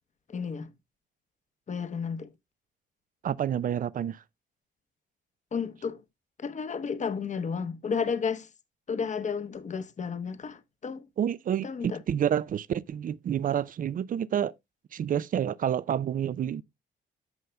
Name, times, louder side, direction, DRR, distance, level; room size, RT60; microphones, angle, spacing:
voice 1, 0.3-0.7 1.7-2.3 5.5-6.0 6.4-8.5 8.9-11.1 11.6-12.0, left 6 dB, 40° left, 0.9 m, -32 dB
voice 2, 3.2-4.2 11.2-14.5 14.9-16.6, right 9 dB, 45° right, 0.4 m, -29 dB
14.0 x 5.5 x 2.2 m
cardioid pair, 90°, 20 cm